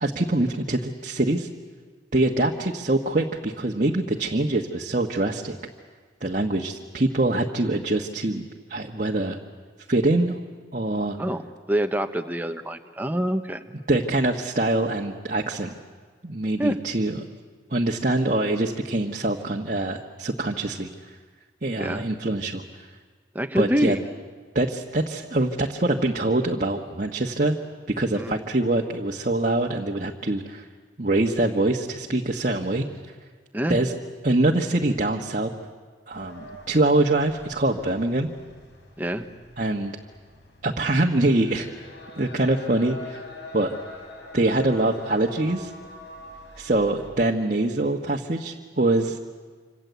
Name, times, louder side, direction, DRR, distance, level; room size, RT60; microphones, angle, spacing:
voice 1, 0.0-1.5 2.1-5.6 6.2-8.4 8.7-9.4 9.9-10.3 10.7-11.2 13.9-15.7 16.2-17.2 17.7-20.9 21.6-22.6 23.5-24.0 24.5-27.6 28.0-30.7 31.0-32.9 33.7-33.9 34.2-35.5 36.1-38.3 39.6-39.9 40.6-41.7 42.2-43.3 43.5-43.7 44.3-45.7 46.6-49.2, right 2 dB, 40° right, 0 dB, 1.4 m, -24 dB
voice 2, 11.2-13.6 16.6-16.8 21.8-22.1 23.3-24.0 28.1-28.4 33.5-33.8 39.0-39.3, equal, 10° right, 6 dB, 1.2 m, -26 dB
sound 1, 36.1-47.1, left 1 dB, 65° left, 5.2 m, -44 dB
27.5 x 26.5 x 8.2 m, 1.5 s
head